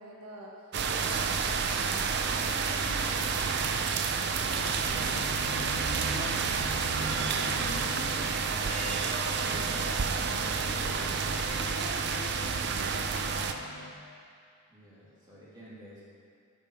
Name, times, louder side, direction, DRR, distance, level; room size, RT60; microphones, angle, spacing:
voice 1, 0.0-1.4 1.8-3.8 4.3-9.2 9.5-11.1 11.7-13.6, left 1 dB, 85° right, -3 dB, 1.6 m, -46 dB
sound 1, 0.7-13.5, right 5 dB, 50° right, 0.5 m, -30 dB
sound 2, 3.3-13.9, left 2 dB, 60° left, 0.7 m, -45 dB
sound 3, 5.7-13.9, left 3 dB, 85° left, 0.9 m, -46 dB
voice 2, 14.7-16.0, equal, 15° right, -9 dB, 2.3 m, -51 dB
9.5 x 6.1 x 5.5 m, 2.4 s
head